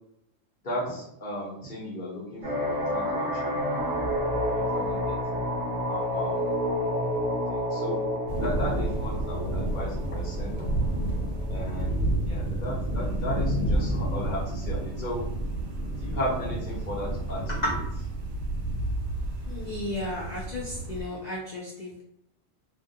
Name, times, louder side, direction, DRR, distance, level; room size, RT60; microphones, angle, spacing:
voice 1, 0.6-3.6 4.1-6.4 6.9-7.1 7.5-8.0 8.4-10.7 11.5-15.2 16.0-17.8, equal, 45° left, -7 dB, 0.8 m, -36 dB
sound 1, 2.4-12.0, equal, 30° right, 0.8 m, -30 dB
sound 2, 8.3-21.0, right 1 dB, 65° right, 0.7 m, -30 dB
voice 2, 19.5-22.0, left 1 dB, 80° left, -3 dB, 0.3 m, -33 dB
2.3 x 2.1 x 2.7 m, 0.79 s
omnidirectional pair, 1.3 m